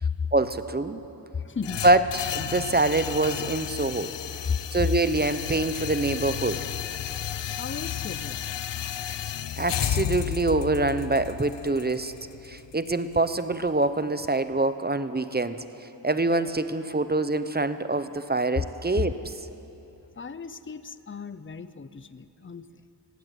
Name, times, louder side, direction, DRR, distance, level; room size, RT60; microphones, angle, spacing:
voice 1, 0.3-1.0 1.8-2.0 2.3-4.1 4.7-6.6 9.1-9.2 9.6-12.1 12.4-15.6 16.0-19.3, right 2 dB, 25° right, 12 dB, 0.8 m, -25 dB
voice 2, 1.4-1.8 4.5-4.6 7.6-8.4 18.6-18.7 20.2-22.7, left 5 dB, 30° left, 14 dB, 0.7 m, -33 dB
sound 1, 1.6-13.7, left 10 dB, 90° left, 0.6 m, -33 dB
18.0 x 15.5 x 9.1 m, 2.9 s
wide cardioid pair, 70°, 42 cm